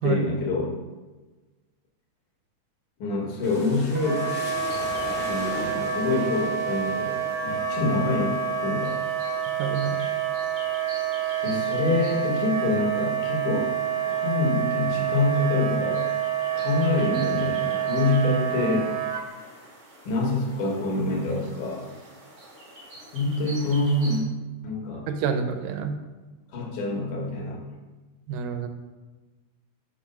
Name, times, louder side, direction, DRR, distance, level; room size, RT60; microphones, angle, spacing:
voice 1, 0.0-0.8 3.0-4.3 5.1-7.2 7.4-9.0 11.4-13.7 14.1-16.1 16.5-19.0 20.1-21.9 23.1-24.3 24.6-25.1 26.5-27.7, left 2 dB, 70° left, 0 dB, 2.6 m, -26 dB
sound 1, 3.4-11.1 11.5-12.3, left 1 dB, 25° left, 1.4 m, -41 dB
Wind instrument woodwind instrument, 3.9-19.2, right 8 dB, 65° right, 2.3 m, -28 dB
sound 2, 4.7-24.2, right 1 dB, 35° right, 2.0 m, -47 dB
voice 2, 9.5-10.0 25.1-25.9 28.3-28.7, right 6 dB, 90° right, 7 dB, 2.4 m, -27 dB
6.1 x 5.5 x 5.3 m, 1.2 s
omnidirectional pair, 3.8 m